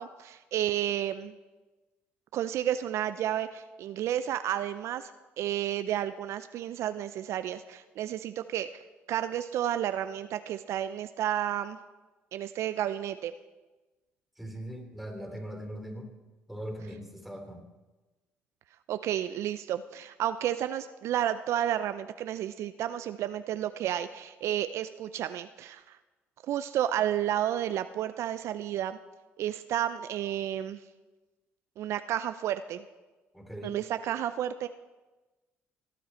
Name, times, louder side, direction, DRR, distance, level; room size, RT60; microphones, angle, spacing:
voice 1, 0.0-1.3 2.3-5.1 5.4-8.8 9.1-11.8 12.3-13.3 18.9-26.0 26.5-29.0 29.4-30.8 31.8-32.8 33.6-34.7, right 11 dB, 65° right, 11 dB, 0.4 m, -31 dB
voice 2, 14.4-16.1 16.5-17.6 33.3-33.8, equal, ahead, 3 dB, 3.3 m, -40 dB
18.0 x 8.5 x 4.4 m, 1.2 s
supercardioid pair, 65°, 5 cm